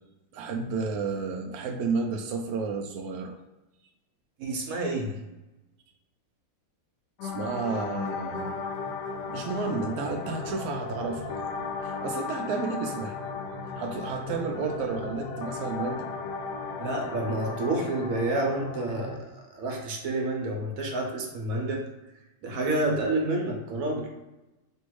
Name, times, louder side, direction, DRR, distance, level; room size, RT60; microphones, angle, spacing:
voice 1, 0.3-3.4 7.2-8.6 9.3-13.2 13.8-16.1, right 4 dB, 90° right, 4 dB, 0.8 m, -32 dB
voice 2, 4.4-5.1 16.8-21.8 22.4-24.1, right 2 dB, 55° right, 1 dB, 1.1 m, -29 dB
sound 1, 7.2-19.2, left 4 dB, 75° left, 1.0 m, -35 dB
3.4 x 2.6 x 4.6 m, 1.0 s
omnidirectional pair, 2.1 m